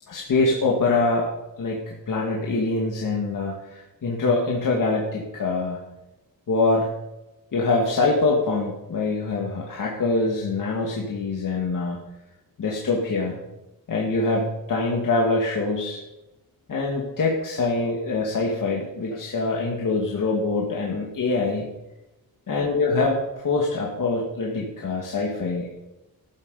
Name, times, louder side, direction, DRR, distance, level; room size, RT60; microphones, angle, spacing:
voice 1, 0.1-1.3 1.6-5.8 6.5-6.9 7.5-12.0 12.6-13.4 13.9-16.0 16.7-21.7 22.5-25.7, left 3 dB, 60° left, -2 dB, 2.0 m, -24 dB
14.0 x 7.7 x 5.4 m, 0.97 s
cardioid pair, 90°, 35 cm